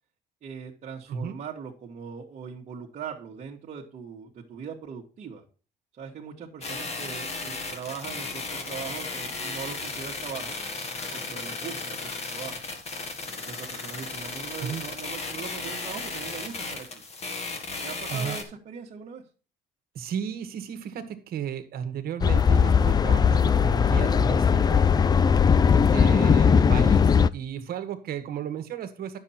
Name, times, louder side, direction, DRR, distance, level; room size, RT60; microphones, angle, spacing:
voice 1, 0.4-5.4 5.9-10.6 11.1-12.6 13.2-16.9 17.8-19.2, right 7 dB, 45° right, -4 dB, 1.6 m, -40 dB
sound 1, 6.6-18.4, left 3 dB, 40° left, 1.9 m, -35 dB
voice 2, 18.1-18.4 19.9-24.8 25.9-29.2, right 7 dB, 65° right, 9 dB, 1.6 m, -33 dB
sound 2, 22.2-27.3, left 6 dB, 25° left, 0.4 m, -19 dB
9.7 x 6.8 x 4.3 m, 0.36 s
cardioid pair, 110°, 17 cm